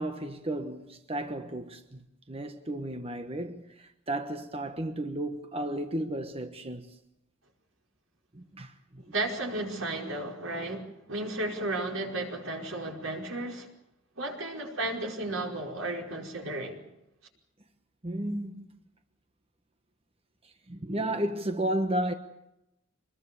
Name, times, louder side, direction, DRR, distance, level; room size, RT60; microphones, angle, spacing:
voice 1, 0.0-6.9 8.3-9.1 18.0-18.7 20.4-22.1, right 1 dB, 30° right, 1.2 m, -33 dB
voice 2, 9.0-13.7 14.2-16.8, right 2 dB, 80° right, 5.0 m, -34 dB
25.5 x 21.5 x 7.0 m
head